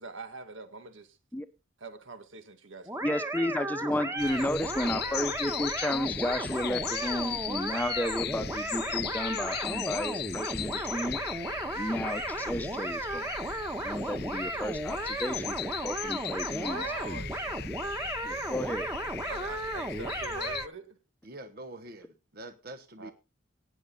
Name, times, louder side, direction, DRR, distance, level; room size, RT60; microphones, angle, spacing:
voice 1, 0.0-1.2 1.8-4.4 5.5-5.7 16.6-18.1 19.3-21.0 23.0-23.1, right 3 dB, 80° right, 2.0 m, -44 dB
sound 1, 2.9-20.7, right 1 dB, 15° right, 1.4 m, -35 dB
voice 2, 3.0-11.2 11.8-13.4 13.8-16.8 18.2-18.9, left 1 dB, 10° left, 0.9 m, -33 dB
sound 2, 4.2-20.7, left 11 dB, 55° left, 0.5 m, -38 dB
voice 3, 21.2-23.1, right 1 dB, 50° right, 1.1 m, -45 dB
18.0 x 6.8 x 4.0 m
head